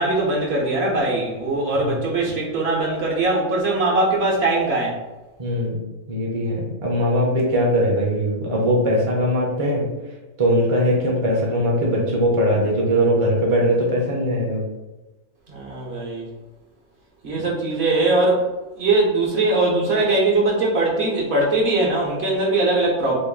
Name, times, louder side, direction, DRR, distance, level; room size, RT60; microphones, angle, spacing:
voice 1, 0.0-5.0 15.5-16.3 17.2-18.5 18.8-23.2, right 2 dB, 60° right, -3 dB, 1.1 m, -21 dB
voice 2, 5.4-5.8 6.1-9.9 10.4-14.6, equal, 30° right, -3 dB, 0.7 m, -20 dB
3.0 x 2.5 x 3.8 m, 1.1 s
omnidirectional pair, 1.3 m